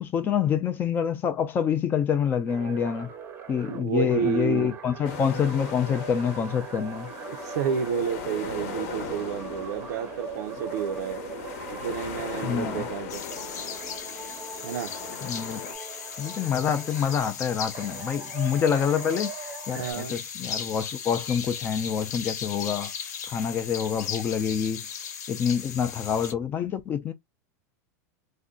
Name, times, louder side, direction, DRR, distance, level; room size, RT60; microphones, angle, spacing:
voice 1, 0.0-3.1 3.5-7.1 12.4-12.9 15.2-15.6 16.2-22.9 23.3-24.9 25.3-27.1, left 7 dB, 20° left, 0.4 m, -27 dB
sound 1, 2.5-13.0 13.3-17.3 17.7-19.9, right 6 dB, 25° right, 0.6 m, -40 dB
voice 2, 3.7-4.8 7.3-11.2 11.8-13.2 14.6-14.9 19.7-20.2, right 8 dB, 75° right, 0.5 m, -30 dB
sound 2, 5.0-15.7, left 6 dB, 55° left, 0.8 m, -39 dB
sound 3, 13.1-26.3, left 7 dB, 85° left, 0.9 m, -37 dB
2.5 x 2.1 x 3.7 m
supercardioid pair, 155°, 9 cm